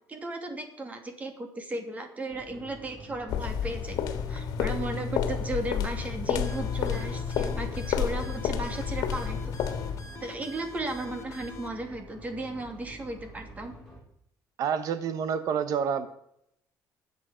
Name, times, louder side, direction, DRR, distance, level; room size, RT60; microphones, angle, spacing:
voice 1, 0.0-9.5 10.2-13.7, right 2 dB, 20° right, 5 dB, 2.8 m, -35 dB
sound 1, 2.3-14.0, right 2 dB, 5° right, 6.1 m, -48 dB
sound 2, 3.3-10.1, left 8 dB, 70° left, 1.8 m, -30 dB
sound 3, 6.4-11.7, left 4 dB, 45° left, 2.2 m, -46 dB
voice 2, 14.6-16.1, right 7 dB, 60° right, 12 dB, 1.1 m, -28 dB
21.0 x 8.2 x 5.2 m, 0.74 s
cardioid pair, 145°, 7 cm